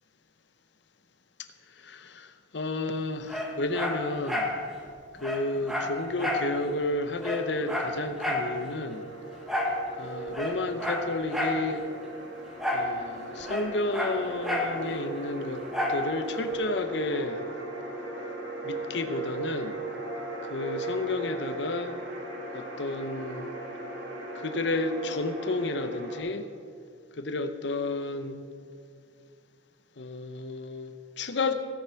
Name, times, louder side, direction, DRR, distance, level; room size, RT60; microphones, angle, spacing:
voice 1, 1.8-4.5 5.2-9.0 10.0-11.8 12.7-15.6 15.9-17.4 18.6-19.7 20.5-21.9 22.5-23.5 24.3-26.5 27.1-28.4 30.0-31.5, left 2 dB, 70° left, 10 dB, 0.8 m, -31 dB
Dog, 3.3-4.6 4.9-5.0 5.2-6.5 6.8-6.9 7.2-8.5 9.5-9.8 10.3-11.6 12.6-12.9 13.2-14.7 15.7-16.0 16.5-16.6, left 1 dB, ahead, 1.4 m, -30 dB
sound 1, 6.2-26.2, right 2 dB, 60° right, 2.4 m, -38 dB
16.5 x 6.9 x 5.8 m, 2.3 s
head